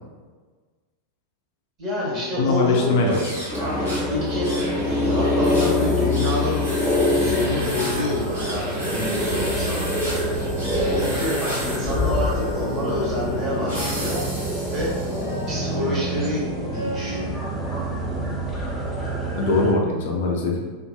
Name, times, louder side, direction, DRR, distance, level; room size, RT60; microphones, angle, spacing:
voice 1, 1.8-3.2 3.6-9.8 10.9-14.2 14.7-14.9 15.5-17.4, left 1 dB, 35° right, -6 dB, 1.1 m, -28 dB
voice 2, 2.4-3.4 19.3-20.7, left 2 dB, 55° left, 0 dB, 0.4 m, -21 dB
sound 1, 3.1-15.5, equal, 70° right, 1.3 m, -35 dB
sound 2, 3.5-19.7, left 1 dB, ahead, 0.7 m, -25 dB
sound 3, 5.7-17.4, left 1 dB, 90° right, 0.3 m, -35 dB
2.5 x 2.5 x 2.2 m, 1.4 s
figure-of-eight pair, 85°, 0 cm